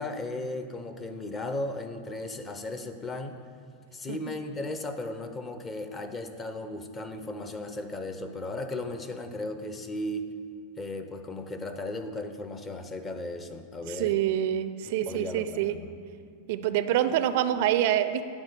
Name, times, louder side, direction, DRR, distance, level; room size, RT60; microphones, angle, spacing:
voice 1, 0.0-3.4 3.9-10.3 10.8-14.2 14.9-16.0, left 2 dB, 20° left, 8 dB, 0.6 m, -36 dB
voice 2, 13.8-15.8 16.5-18.2, right 11 dB, 65° right, 12 dB, 0.4 m, -26 dB
9.6 x 4.0 x 6.7 m, 2.3 s
supercardioid pair, 125°, 0 cm